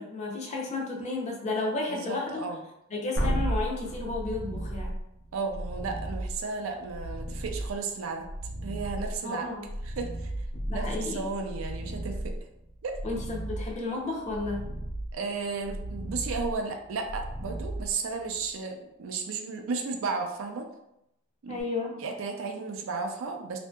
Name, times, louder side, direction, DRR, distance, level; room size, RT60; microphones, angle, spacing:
voice 1, 0.0-2.5 2.9-4.9 9.2-9.7 10.6-11.2 13.0-14.7 21.5-22.0, left 3 dB, 35° left, -1 dB, 0.5 m, -32 dB
voice 2, 1.9-2.6 5.3-8.3 8.6-9.5 9.8-10.3 10.7-12.3 12.8-13.0 15.1-20.7 21.4-21.6 22.0-23.6, right 4 dB, 65° right, 4 dB, 0.4 m, -34 dB
sound 1, 3.2-18.5 21.6-21.7, right 1 dB, 80° left, 0.7 m, -35 dB
2.7 x 2.6 x 2.2 m, 0.83 s
head